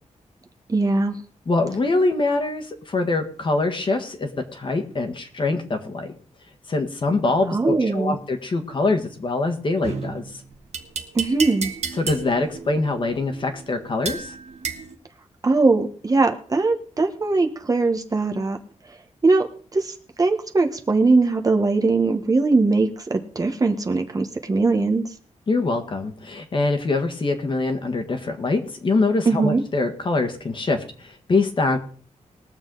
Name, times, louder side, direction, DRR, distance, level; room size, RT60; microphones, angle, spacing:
voice 1, 0.7-1.2 7.5-8.2 11.1-11.7 15.4-18.6 19.2-19.5 19.7-25.0 29.2-29.6, right 3 dB, 30° right, 4 dB, 1.1 m, -20 dB
voice 2, 1.5-6.1 6.7-10.4 12.0-14.3 25.5-31.8, left 3 dB, 40° left, 5 dB, 1.6 m, -24 dB
sound 1, 9.8-15.0, right 5 dB, 60° right, 1.4 m, -33 dB
21.0 x 7.2 x 3.9 m, 0.43 s
wide cardioid pair, 140°, 13 cm